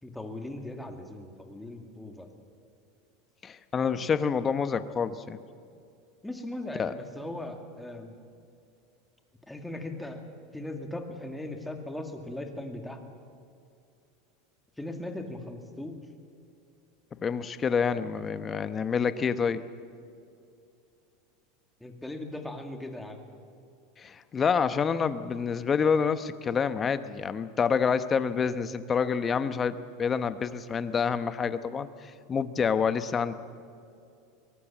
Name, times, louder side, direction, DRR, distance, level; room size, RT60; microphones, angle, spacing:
voice 1, 0.0-2.3 6.2-8.1 9.5-10.2 10.5-13.0 14.8-16.0 21.8-23.3, left 1 dB, 5° left, 5 dB, 2.2 m, -38 dB
voice 2, 3.4-5.4 6.8-6.9 17.2-19.6 24.0-33.3, left 6 dB, 25° left, 12 dB, 0.9 m, -27 dB
23.0 x 19.0 x 7.3 m, 2.5 s
supercardioid pair, 135°, 0 cm